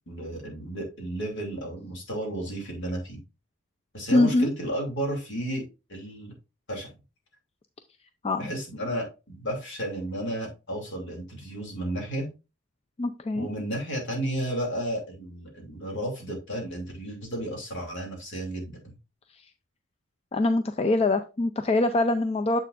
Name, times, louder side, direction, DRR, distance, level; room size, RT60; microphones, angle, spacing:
voice 1, 0.1-3.2 3.9-5.6 5.9-6.3 6.7-6.9 8.4-12.3 13.3-19.0, right 1 dB, 60° left, 1 dB, 2.8 m, -33 dB
voice 2, 4.1-4.5 8.2-8.5 13.0-13.5 20.3-22.6, left 2 dB, 30° left, 8 dB, 0.4 m, -23 dB
7.3 x 6.7 x 2.5 m, 0.29 s
head